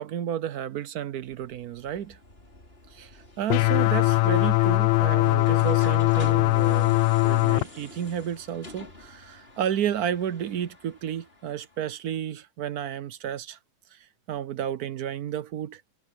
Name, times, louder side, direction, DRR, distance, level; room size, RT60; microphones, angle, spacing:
voice 1, 0.0-2.2 2.9-7.0 7.2-13.6 13.9-15.8, right 10 dB, 65° right, 1.0 m, -32 dB
sound 1, 1.2-11.9, left 2 dB, 25° left, 4.5 m, -48 dB
sound 2, 3.5-7.6, left 22 dB, 85° left, 1.5 m, -21 dB
omnidirectional pair, 2.2 m